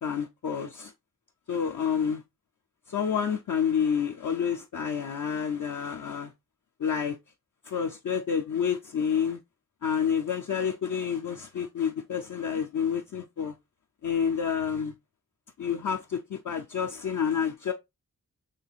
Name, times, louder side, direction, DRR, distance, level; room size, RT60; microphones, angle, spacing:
voice 1, 0.0-0.9 1.5-2.2 2.9-6.3 6.8-7.2 7.6-9.4 9.8-13.6 14.0-14.9 15.6-17.7, left 7 dB, 65° left, 0.5 m, -29 dB
4.4 x 3.0 x 2.4 m
wide cardioid pair, 70°, 34 cm